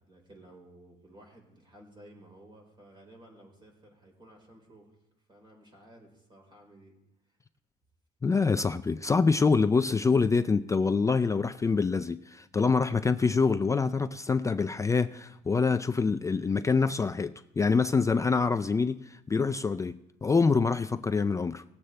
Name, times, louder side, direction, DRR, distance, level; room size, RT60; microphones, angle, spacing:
voice 1, 0.0-4.9 5.3-7.0, right 1 dB, 25° right, 4.2 m, -54 dB
voice 2, 8.2-21.6, left 4 dB, 20° left, 0.4 m, -26 dB
19.5 x 7.7 x 3.3 m
cardioid pair, 110°, 17 cm